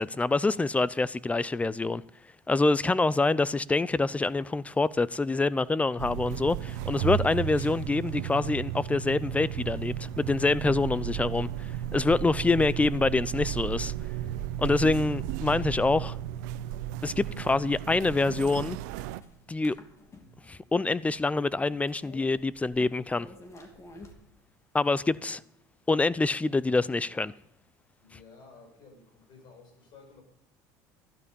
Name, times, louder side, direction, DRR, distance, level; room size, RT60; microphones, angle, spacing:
voice 1, 0.0-2.0 2.5-13.9 14.6-16.2 17.0-18.8 19.5-19.8 20.5-23.3 24.7-25.4 25.9-27.3, left 3 dB, 15° left, 0.5 m, -26 dB
sound 1, 4.2-24.1, left 1 dB, 30° left, 2.8 m, -57 dB
sound 2, 6.0-19.2, right 12 dB, 80° right, 0.7 m, -34 dB
voice 2, 28.0-30.2, left 4 dB, 55° left, 6.4 m, -53 dB
13.5 x 11.0 x 5.4 m
supercardioid pair, 85°, 10 cm